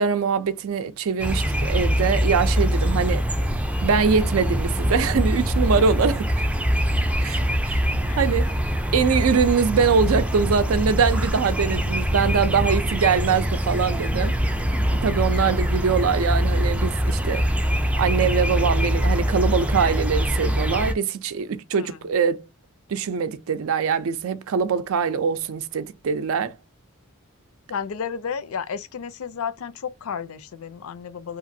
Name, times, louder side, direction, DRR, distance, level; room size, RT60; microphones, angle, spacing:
voice 1, 0.0-3.3 3.8-6.3 7.2-7.8 8.2-8.5 8.9-14.4 15.0-17.5 18.0-22.4 22.9-26.6, right 6 dB, 75° right, 0.4 m, -23 dB
sound 1, 1.2-20.9, equal, 5° right, 0.3 m, -23 dB
voice 2, 21.7-22.1 27.7-31.4, left 6 dB, 75° left, 0.4 m, -32 dB
2.9 x 2.4 x 2.6 m
head